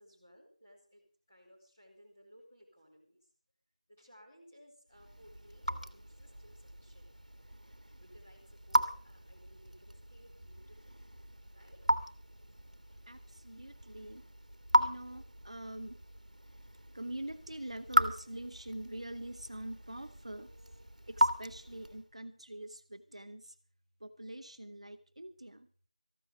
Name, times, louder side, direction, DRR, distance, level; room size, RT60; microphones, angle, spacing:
voice 1, 0.0-3.3 3.9-7.3 8.0-11.0 11.5-12.1, equal, 10° left, -7 dB, 2.6 m, -61 dB
Raindrop / Drip, 4.9-22.1, equal, 75° right, 1.5 m, -36 dB
voice 2, 13.1-14.3 14.8-16.0 16.9-23.6 24.0-25.7, right 1 dB, 50° right, 9 dB, 1.1 m, -45 dB
14.5 x 13.0 x 5.1 m, 0.43 s
figure-of-eight pair, 175°, 4 cm